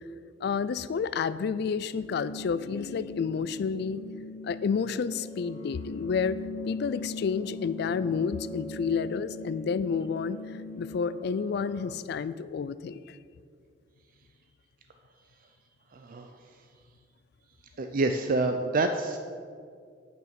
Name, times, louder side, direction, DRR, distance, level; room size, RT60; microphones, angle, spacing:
voice 1, 0.4-4.0 4.4-13.2, left 6 dB, 60° left, 15 dB, 0.3 m, -30 dB
sound 1, 1.9-11.9, left 2 dB, 35° left, 0.7 m, -41 dB
voice 2, 15.9-16.3 17.8-19.2, right 2 dB, 50° right, 7 dB, 0.4 m, -27 dB
9.4 x 5.9 x 5.9 m, 2.2 s
head